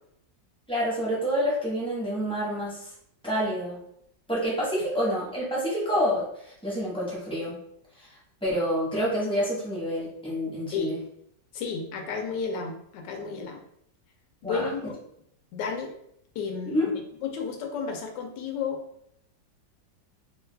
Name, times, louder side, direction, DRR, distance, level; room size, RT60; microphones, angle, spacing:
voice 1, 0.7-2.8 3.2-3.8 4.3-7.6 8.4-11.0 14.4-14.6 16.7-16.9, equal, 5° left, -7 dB, 0.7 m, -28 dB
voice 2, 11.5-13.6 14.4-14.9 15.5-15.9 16.3-18.8, left 5 dB, 75° left, 3 dB, 1.2 m, -32 dB
3.2 x 2.3 x 3.3 m, 0.72 s
omnidirectional pair, 2.0 m